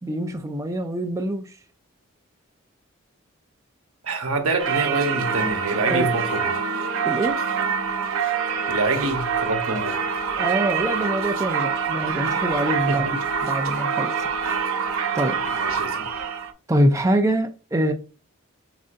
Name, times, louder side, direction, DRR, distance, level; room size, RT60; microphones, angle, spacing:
voice 1, 0.0-1.6 5.9-6.1 7.0-7.4 10.4-13.1 13.4-14.2 15.1-15.4 16.7-17.9, right 1 dB, 15° right, 0.4 m, -24 dB
voice 2, 4.0-6.6 8.7-10.0 12.9-13.1 15.5-16.1, right 2 dB, 90° right, 1.1 m, -26 dB
Singing / Church bell, 4.6-16.5, right 6 dB, 75° right, 0.7 m, -25 dB
7.3 x 2.5 x 2.6 m
head